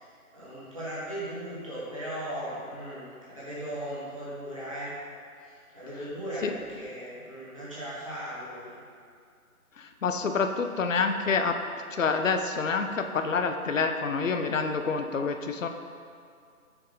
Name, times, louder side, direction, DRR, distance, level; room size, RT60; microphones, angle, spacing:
voice 1, 0.0-4.9 5.4-8.8, equal, 20° right, -12 dB, 1.3 m, -38 dB
voice 2, 9.8-11.6 11.9-15.7, left 5 dB, 60° left, 6 dB, 0.5 m, -27 dB
6.4 x 4.7 x 3.8 m, 2.3 s
figure-of-eight pair, 165°, 44 cm